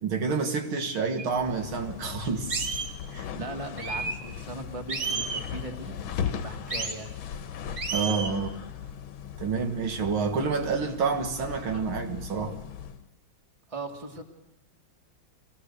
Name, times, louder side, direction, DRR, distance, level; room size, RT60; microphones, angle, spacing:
voice 1, 0.0-2.7 3.1-3.3 7.9-8.6 9.4-12.6, right 5 dB, 85° right, 5 dB, 2.4 m, -28 dB
sound 1, 1.2-1.3 1.8-1.9 2.5-2.9 3.8-4.2 4.9-5.5 6.7-7.0 7.8-8.3, right 4 dB, 45° right, 2.2 m, -31 dB
sound 2, 1.3-13.0, left 8 dB, 80° left, 1.8 m, -38 dB
voice 2, 3.3-7.1 13.7-14.2, right 2 dB, 15° right, 2 dB, 1.8 m, -39 dB
24.0 x 17.5 x 6.7 m, 0.92 s
omnidirectional pair, 2.2 m